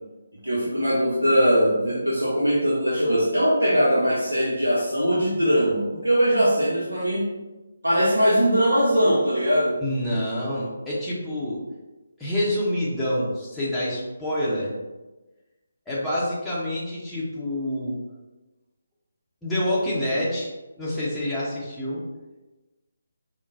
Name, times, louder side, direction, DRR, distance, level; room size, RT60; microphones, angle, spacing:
voice 1, 0.4-7.3 7.8-9.8, equal, 85° right, -7 dB, 0.8 m, -21 dB
voice 2, 9.8-11.6 12.2-14.7 15.9-18.0 19.4-22.0, left 1 dB, 5° left, -11 dB, 0.7 m, -27 dB
4.5 x 2.1 x 2.5 m, 1.1 s
figure-of-eight pair, 150°, 0 cm